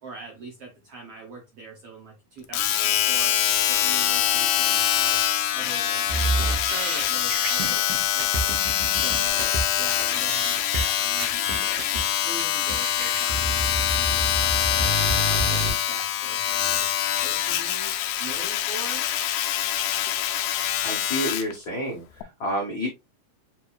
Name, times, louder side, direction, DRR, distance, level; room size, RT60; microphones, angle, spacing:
voice 1, 0.0-5.2 5.5-8.6 8.9-14.9 15.3-17.9 18.2-19.1, right 3 dB, 60° right, 1.7 m, -42 dB
Domestic sounds home sounds, 2.5-21.5 22.2-22.3, left 12 dB, 80° left, 1.8 m, -24 dB
sound 1, 6.1-9.6 10.0-10.1 10.3-10.8 11.2-12.0 12.4-12.5 12.7-15.7, right 2 dB, 85° right, 2.6 m, -29 dB
voice 2, 20.8-22.9, equal, 60° left, 1.3 m, -29 dB
7.3 x 2.7 x 2.3 m
omnidirectional pair, 4.0 m